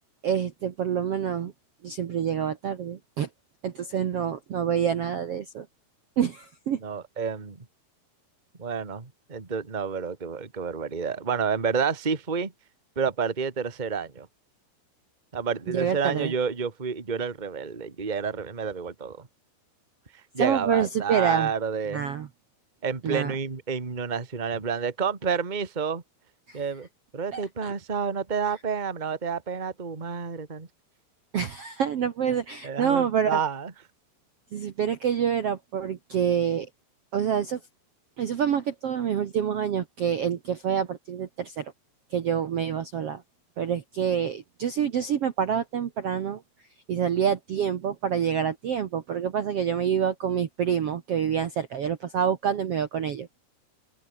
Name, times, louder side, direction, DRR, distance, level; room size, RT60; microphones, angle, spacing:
voice 1, 0.2-1.5 1.8-3.3 3.6-5.7 6.2-6.8 15.7-16.3 20.4-21.5 21.9-22.3 23.0-23.3 26.5-26.6 27.3-27.7 31.3-33.4 34.5-36.7 37.1-37.6 38.2-41.7 42.1-43.2 43.6-46.4 46.9-53.3, right 8 dB, 85° right, 1.3 m, -27 dB
voice 2, 6.8-7.6 8.6-12.5 12.9-14.3 15.3-19.3 20.3-22.0 22.8-26.0 26.5-26.9 27.1-30.7 32.3-33.7, right 6 dB, 25° right, 0.9 m, -29 dB
omnidirectional pair, 4.9 m